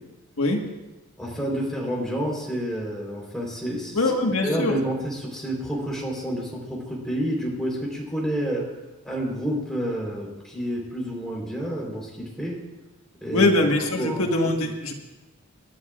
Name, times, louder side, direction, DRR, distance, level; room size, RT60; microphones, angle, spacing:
voice 1, 1.2-4.1 4.4-8.7 9.0-12.6 13.2-13.5 14.0-14.2, equal, ahead, -3 dB, 3.7 m, -29 dB
voice 2, 3.9-4.8 13.3-15.0, left 2 dB, 80° left, 2 dB, 1.5 m, -22 dB
27.5 x 11.5 x 2.4 m, 1.1 s
head